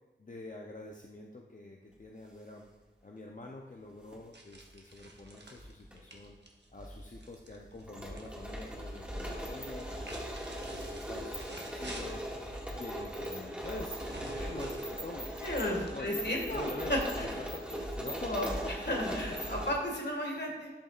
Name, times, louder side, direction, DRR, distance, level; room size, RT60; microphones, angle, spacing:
voice 1, 0.2-2.7 3.0-6.4 6.7-10.2 10.7-12.2 12.7-15.3 15.7-17.0 17.2-18.4 18.6-19.2 19.5-19.6, left 2 dB, 45° left, 0 dB, 0.7 m, -46 dB
sound 1, 3.9-4.2 5.2-6.0 6.2-6.3 6.8-19.7, equal, 5° right, 1.9 m, -39 dB
sound 2, 4.3-8.3 8.5-9.1 9.7-12.4 13.6-16.3, right 2 dB, 65° right, 1.1 m, -50 dB
voice 2, 15.4-17.3 18.2-20.7, left 1 dB, 60° left, 0 dB, 1.8 m, -34 dB
11.5 x 5.3 x 2.5 m, 1.3 s
wide cardioid pair, 40°, 19 cm